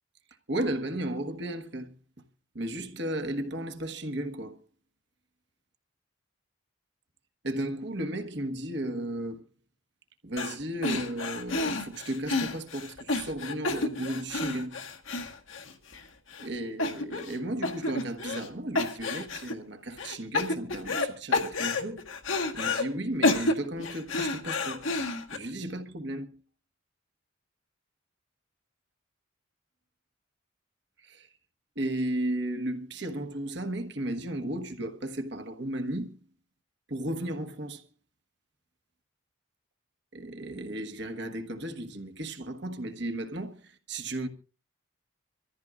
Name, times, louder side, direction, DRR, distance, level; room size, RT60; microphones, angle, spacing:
voice 1, 0.5-1.9 2.5-4.6 7.4-9.4 10.2-14.8 16.4-22.1 22.5-24.9 25.3-26.3 31.0-31.3 31.7-36.2 36.9-37.8 40.1-44.3, right 1 dB, 55° right, 1.4 m, -34 dB
sound 1, 10.4-10.6 10.8-16.0 16.3-16.5 16.8-17.4 17.6-18.5 18.8-19.5 20.0-21.1 21.3-22.8 23.2-25.4, left 3 dB, 75° left, 1.6 m, -30 dB
25.0 x 14.0 x 2.5 m
head